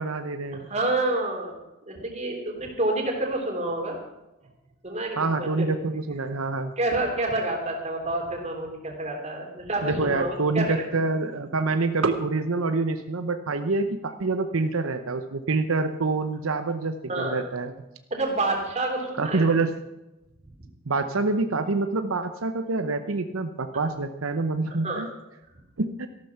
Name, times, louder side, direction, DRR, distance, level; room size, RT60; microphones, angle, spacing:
voice 1, 0.0-0.7 5.2-6.7 9.8-17.7 19.2-19.7 20.9-25.1 25.8-26.1, right 3 dB, 90° right, 8 dB, 0.9 m, -26 dB
voice 2, 0.5-1.6 1.8-4.0 4.8-5.7 6.8-10.7 17.1-17.3 18.1-19.5 24.8-25.0, right 2 dB, 35° right, 1 dB, 3.2 m, -28 dB
14.0 x 12.0 x 5.8 m, 0.95 s
head